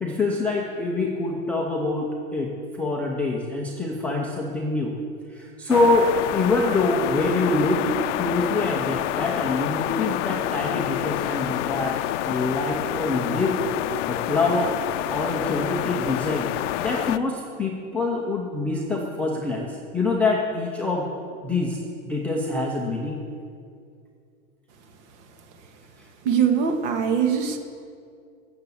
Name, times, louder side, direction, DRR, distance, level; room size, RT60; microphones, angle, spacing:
voice 1, 0.0-2.5 2.8-5.0 5.3-7.8 8.2-12.0 12.2-13.5 14.1-14.7 15.1-16.5 16.8-21.1 21.4-21.8 22.0-23.2, left 2 dB, 5° left, -3 dB, 0.4 m, -25 dB
sound 1, 5.7-17.2, left 14 dB, 60° left, 0.5 m, -28 dB
voice 2, 26.3-27.6, right 7 dB, 55° right, 5 dB, 1.8 m, -22 dB
13.0 x 6.9 x 8.3 m, 2.4 s
supercardioid pair, 150°, 41 cm